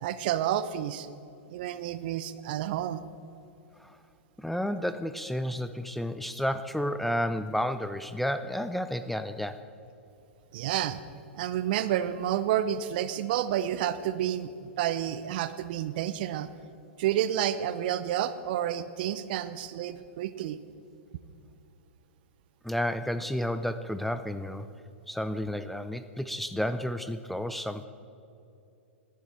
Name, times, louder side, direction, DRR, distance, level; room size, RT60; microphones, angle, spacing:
voice 1, 0.0-1.1 1.5-3.1 10.5-11.0 11.4-16.5 17.0-20.6, right 11 dB, 50° right, 14 dB, 0.6 m, -30 dB
voice 2, 4.4-9.6 22.6-24.7 25.1-27.9, equal, ahead, 11 dB, 0.5 m, -31 dB
18.5 x 11.0 x 4.4 m, 2.7 s
figure-of-eight pair, 105°, 7 cm